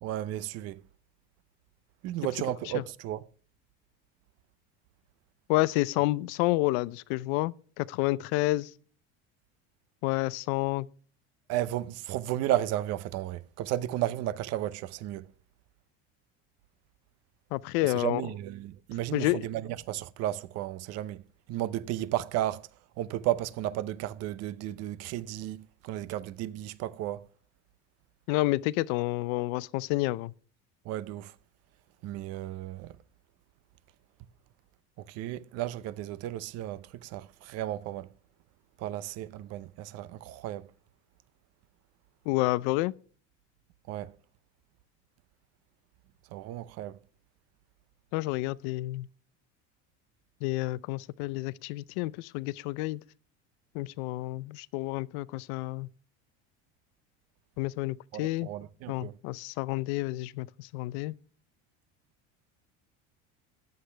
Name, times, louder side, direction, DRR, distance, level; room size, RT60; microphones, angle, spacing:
voice 1, 0.0-0.8 2.0-3.2 11.5-15.3 17.8-21.2 21.5-22.6 23.0-27.3 30.8-31.3 32.0-33.0 35.0-38.1 38.8-40.7 43.9-44.1 46.3-47.0 58.1-59.2, right 13 dB, 50° right, 0.8 m, -33 dB
voice 2, 5.5-8.7 10.0-10.9 17.5-18.2 19.1-19.4 28.3-30.3 42.3-42.9 48.1-49.1 50.4-53.0 53.7-55.9 57.6-58.5 58.9-61.1, left 19 dB, 80° left, 0.6 m, -29 dB
14.5 x 9.8 x 3.4 m
cardioid pair, 155°, 32 cm